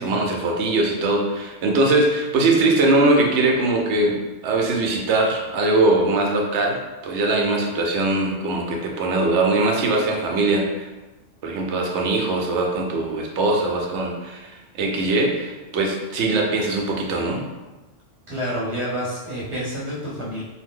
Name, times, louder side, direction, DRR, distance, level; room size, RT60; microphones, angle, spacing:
voice 1, 0.0-6.8 7.0-10.9 11.4-17.4, right 2 dB, 70° right, 0 dB, 0.9 m, -21 dB
voice 2, 18.3-20.4, equal, 30° right, -7 dB, 0.9 m, -28 dB
2.8 x 2.1 x 3.6 m, 1.1 s
omnidirectional pair, 1.2 m